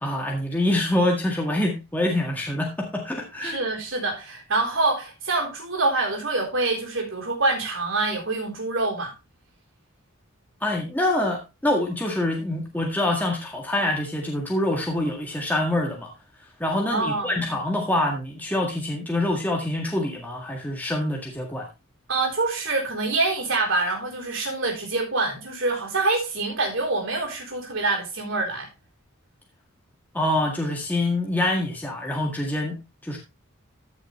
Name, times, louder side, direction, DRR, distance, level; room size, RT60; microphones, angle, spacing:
voice 1, 0.0-3.6 10.6-16.1 16.6-21.7 30.1-33.2, left 1 dB, 10° left, 1.8 m, -25 dB
voice 2, 3.4-9.1 16.9-17.4 22.1-28.7, right 3 dB, 65° right, 4.1 m, -26 dB
14.5 x 6.5 x 3.2 m
head